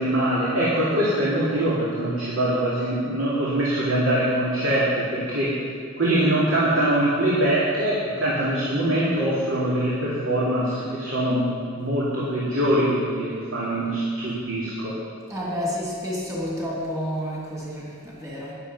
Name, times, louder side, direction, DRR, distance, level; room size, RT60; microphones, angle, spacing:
voice 1, 0.0-5.5 6.0-11.5 11.7-15.0, right 1 dB, 70° right, -8 dB, 2.7 m, -23 dB
voice 2, 15.3-18.5, equal, 15° right, -5 dB, 2.8 m, -30 dB
12.5 x 10.0 x 5.5 m, 2.2 s
head